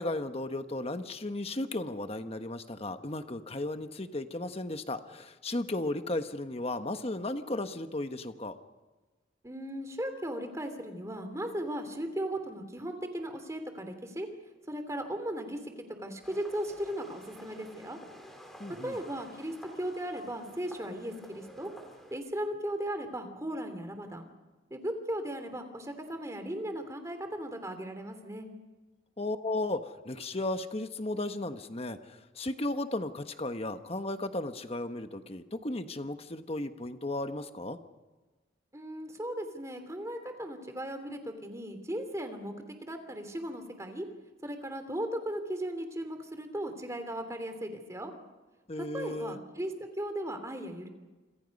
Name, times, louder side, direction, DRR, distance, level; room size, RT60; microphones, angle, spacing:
voice 1, 0.0-8.5 18.6-19.0 29.2-37.8 48.7-49.4, left 2 dB, 30° left, 8 dB, 1.2 m, -35 dB
voice 2, 9.4-14.3 14.7-15.6 16.0-18.0 18.8-21.7 22.1-24.3 24.7-28.5 38.7-42.5 42.8-44.1 44.4-48.1 48.9-50.9, right 1 dB, 15° right, 7 dB, 2.9 m, -37 dB
sound 1, 16.2-22.2, equal, ahead, 3.5 m, -51 dB
28.0 x 26.5 x 5.4 m, 1.2 s
head